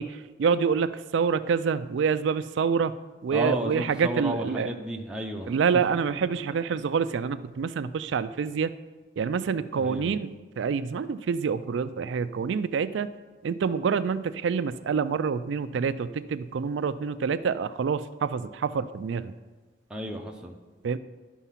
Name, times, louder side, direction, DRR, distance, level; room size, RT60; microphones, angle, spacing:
voice 1, 0.0-2.9 3.2-4.7 5.5-8.7 9.2-13.1 13.4-19.3 20.8-21.0, right 6 dB, 75° right, 13 dB, 0.3 m, -27 dB
voice 2, 3.3-5.5 9.8-10.1 19.9-20.5, right 1 dB, 5° right, 1 dB, 0.5 m, -32 dB
11.0 x 4.5 x 5.7 m, 1.3 s
head